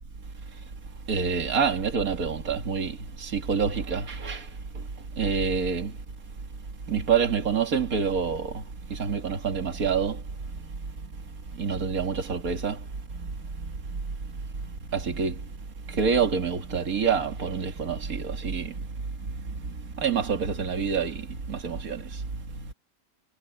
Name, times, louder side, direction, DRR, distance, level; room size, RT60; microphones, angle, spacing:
voice 1, 1.1-4.5 5.2-5.9 6.9-8.6 8.9-10.2 11.6-12.8 13.1-13.3 13.6-13.7 13.9-14.0 14.9-15.4 15.9-18.8 19.3-19.5 20.0-22.2, right 6 dB, 75° right, 2.5 m, -27 dB
omnidirectional pair, 1.5 m